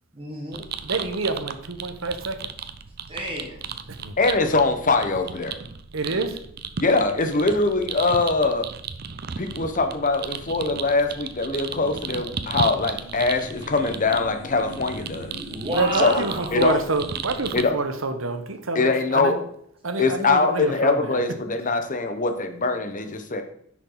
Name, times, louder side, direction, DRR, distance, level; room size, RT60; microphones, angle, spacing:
voice 1, 0.1-0.7 3.1-3.6 15.5-16.6, equal, 30° right, -1 dB, 1.5 m, -31 dB
sound 1, 0.5-17.6, right 6 dB, 50° right, 0.6 m, -35 dB
voice 2, 0.8-2.5 3.9-4.1 5.9-6.4 15.7-19.4 19.8-21.2, right 3 dB, 90° right, 8 dB, 1.1 m, -27 dB
voice 3, 4.2-5.6 6.8-8.7 9.4-15.3 16.0-16.8 17.5-17.7 18.7-19.4 20.0-23.4, left 3 dB, 40° left, 6 dB, 1.1 m, -23 dB
sound 2, 12.5-17.4, left 1 dB, 75° left, 1.8 m, -41 dB
10.5 x 6.3 x 3.9 m, 0.68 s
head